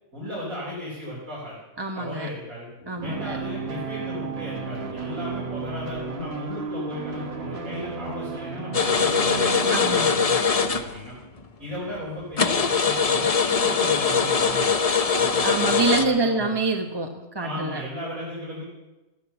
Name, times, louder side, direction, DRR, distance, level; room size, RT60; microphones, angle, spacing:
voice 1, 0.1-1.5 1.9-2.7 3.0-11.1 11.6-14.7 15.1-16.4 17.4-18.6, equal, 75° right, -7 dB, 4.9 m, -36 dB
voice 2, 1.8-2.3 2.9-3.4 9.7-10.2 15.4-17.8, right 3 dB, 20° right, 3 dB, 1.0 m, -26 dB
sound 1, 3.0-10.0, right 4 dB, 50° right, 1.6 m, -33 dB
sound 2, 8.7-11.1 11.4-11.5 12.0-12.1 12.4-16.0, left 5 dB, 35° left, 0.7 m, -22 dB
15.0 x 12.5 x 7.0 m, 1.1 s
omnidirectional pair, 1.5 m